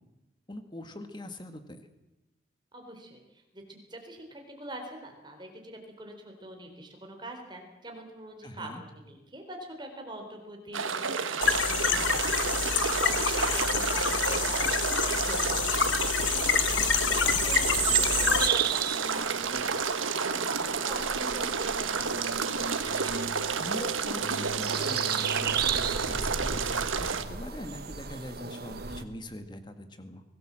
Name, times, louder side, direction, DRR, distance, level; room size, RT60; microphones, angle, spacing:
voice 1, 0.5-1.8 8.4-8.8 23.3-30.2, left 1 dB, 25° left, 8 dB, 1.8 m, -42 dB
voice 2, 2.7-11.0 11.3-19.8 20.2-22.0 22.9-23.2, right 1 dB, 25° right, 3 dB, 3.9 m, -44 dB
sound 1, 10.7-27.2, right 5 dB, 90° right, 1.5 m, -31 dB
sound 2, 11.4-18.5, left 7 dB, 70° left, 1.3 m, -27 dB
sound 3, 16.7-29.0, right 8 dB, 50° right, 1.4 m, -34 dB
24.5 x 18.0 x 7.7 m, 0.98 s
head